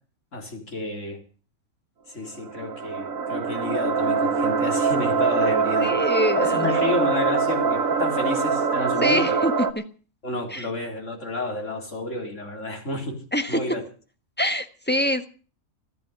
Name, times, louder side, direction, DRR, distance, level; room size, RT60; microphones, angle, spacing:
voice 1, 0.3-1.2 2.1-6.0 6.3-9.4 10.2-13.2 13.5-13.8, left 2 dB, 55° left, 2 dB, 4.2 m, -30 dB
sound 1, 2.3-9.7, right 5 dB, 65° right, 1.6 m, -23 dB
voice 2, 5.8-6.9 9.0-9.5 10.5-10.7 13.3-13.6 14.4-15.3, equal, 5° left, 8 dB, 1.3 m, -25 dB
15.5 x 12.5 x 6.9 m, 0.39 s
omnidirectional pair, 1.5 m